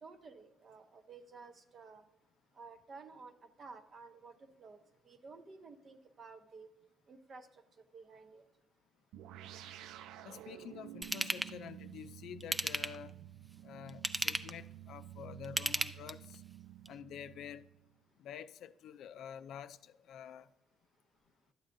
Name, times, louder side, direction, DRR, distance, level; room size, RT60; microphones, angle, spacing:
voice 1, 0.0-2.0 2.5-4.8 5.0-6.7 7.1-7.6 7.9-8.4, right 4 dB, 40° right, 0.8 m, -53 dB
sound 1, 9.1-17.9, right 13 dB, 90° right, 0.3 m, -51 dB
voice 2, 10.2-13.1 13.6-16.4 16.9-17.6 18.2-20.5, left 9 dB, 70° left, 0.3 m, -48 dB
Ratchet pawl / Tools, 11.0-11.5 12.4-13.1 13.9-14.6 15.4-16.3 16.8-16.9, right 1 dB, 10° right, 0.3 m, -35 dB
12.0 x 8.7 x 2.6 m
cardioid pair, 130°, 0 cm